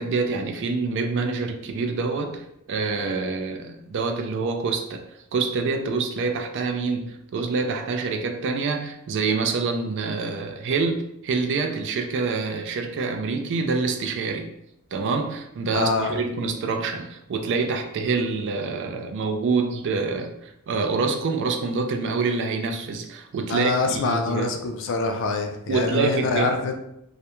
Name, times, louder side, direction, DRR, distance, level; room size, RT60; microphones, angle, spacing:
voice 1, 0.0-5.0 5.3-14.5 14.9-24.5 25.7-26.5, right 4 dB, 55° right, 5 dB, 0.3 m, -26 dB
voice 2, 15.7-16.1 23.5-26.7, left 3 dB, 55° left, 5 dB, 0.4 m, -25 dB
2.3 x 2.1 x 2.9 m, 0.80 s
head